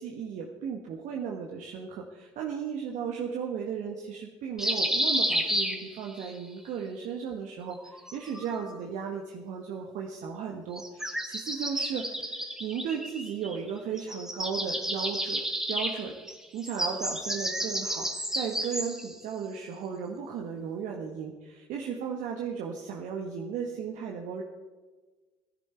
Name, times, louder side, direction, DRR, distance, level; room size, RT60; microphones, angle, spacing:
voice 1, 0.0-15.4 15.7-16.1 16.5-24.4, right 7 dB, 60° right, 0 dB, 1.4 m, -35 dB
sound 1, 4.6-6.3 7.7-8.8 10.7-13.7 14.0-19.1, right 1 dB, 5° right, 1.4 m, -31 dB
17.0 x 10.5 x 4.4 m, 1.3 s
hypercardioid pair, 60°, 15 cm